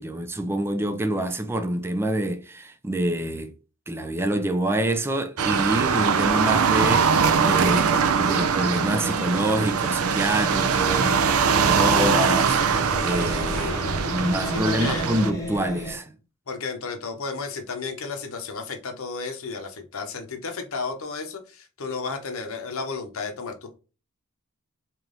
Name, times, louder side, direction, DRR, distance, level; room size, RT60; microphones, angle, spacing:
voice 1, 0.0-3.5 3.9-13.7 14.1-16.1, right 1 dB, 10° right, 0.4 m, -26 dB
sound 1, 5.4-15.3, right 6 dB, 75° right, 0.5 m, -22 dB
sound 2, 10.1-15.9, equal, 15° left, 0.8 m, -34 dB
voice 2, 13.5-14.1 14.5-15.1 16.5-23.8, left 4 dB, 65° left, 0.8 m, -33 dB
3.3 x 3.0 x 3.8 m
head